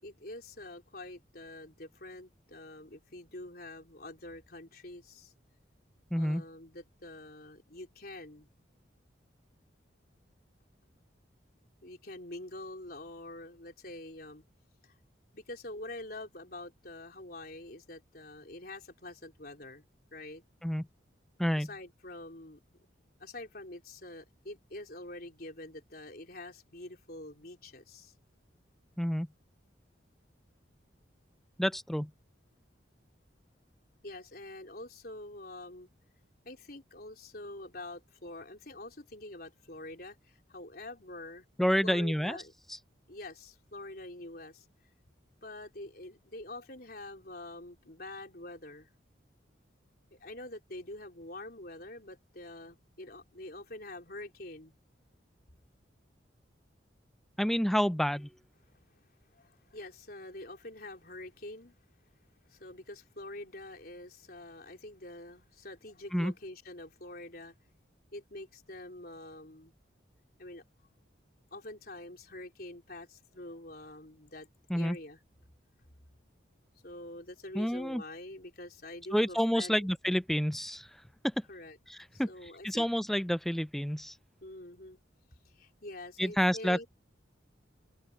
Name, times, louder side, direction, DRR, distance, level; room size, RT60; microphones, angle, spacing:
voice 1, 0.0-5.3 6.1-8.5 11.8-14.4 14.8-14.9 15.3-19.8 20.1-20.4 21.6-22.6 23.2-28.1 34.0-35.9 36.4-41.4 41.8-42.5 43.1-44.7 45.4-48.9 50.1-54.7 58.9-59.0 59.3-61.8 62.5-67.5 68.1-69.7 70.4-70.6 71.5-74.5 74.7-75.2 76.8-79.9 81.5-81.8 82.1-82.8 84.4-85.0 85.4-86.9, left 2 dB, 50° left, 4.2 m, -46 dB
voice 2, 6.1-6.4 20.6-20.8 21.4-21.7 29.0-29.3 31.6-32.1 41.6-42.4 57.4-58.3 66.1-66.3 74.7-75.0 77.5-78.0 79.1-80.9 81.2-81.3 81.9-82.3 82.6-84.2 86.2-86.8, equal, ahead, 0.3 m, -29 dB
open air
head